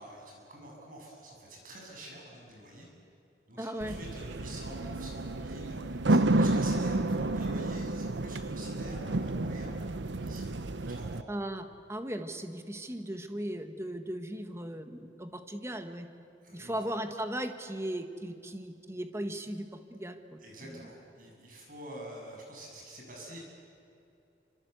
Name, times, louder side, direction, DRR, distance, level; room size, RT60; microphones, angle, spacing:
voice 1, 0.0-2.9 3.5-9.8 10.1-10.5 10.9-11.2 16.4-16.9 20.4-23.4, right 1 dB, 45° right, -1 dB, 7.7 m, -47 dB
voice 2, 3.6-4.0 11.3-16.1 16.5-20.9, right 1 dB, 15° right, 7 dB, 1.4 m, -37 dB
sound 1, 3.8-11.2, right 2 dB, 75° right, 0.9 m, -30 dB
28.0 x 26.0 x 8.2 m, 2.7 s
head